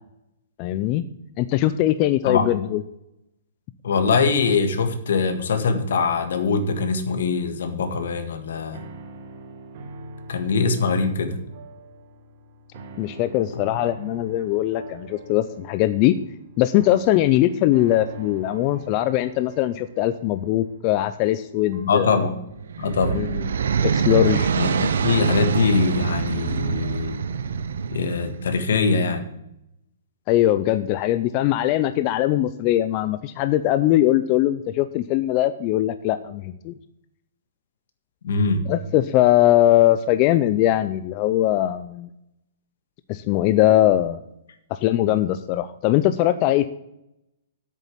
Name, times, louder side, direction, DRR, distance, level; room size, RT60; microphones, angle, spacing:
voice 1, 0.6-1.1 1.4-2.8 13.0-16.1 16.6-22.2 23.1-23.5 23.8-24.5 30.3-36.7 38.7-42.1 43.1-44.2 44.7-46.7, left 14 dB, 25° left, 12 dB, 0.4 m, -21 dB
voice 2, 3.8-8.8 10.3-11.4 21.9-22.3 22.8-23.2 24.6-27.2 27.9-29.2 38.2-38.6, left 4 dB, 70° left, 9 dB, 1.6 m, -22 dB
Old school piano intro, 7.8-24.1, right 2 dB, 40° right, 1.6 m, -44 dB
sound 1, 22.5-28.6, right 6 dB, 75° right, 0.8 m, -25 dB
8.3 x 7.0 x 8.3 m, 0.83 s
hypercardioid pair, 170°, 0 cm